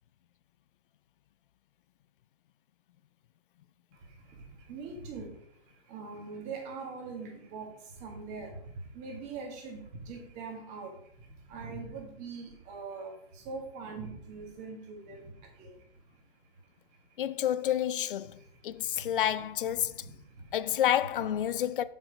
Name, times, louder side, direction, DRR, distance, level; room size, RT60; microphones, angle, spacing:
voice 1, 3.9-17.0 18.2-19.2 19.8-20.5 21.5-21.6, right 4 dB, 20° right, 1.7 m, -43 dB
voice 2, 17.2-20.1 20.5-21.8, left 11 dB, 55° left, 0.5 m, -29 dB
6.5 x 6.0 x 5.0 m
hypercardioid pair, 150°, 32 cm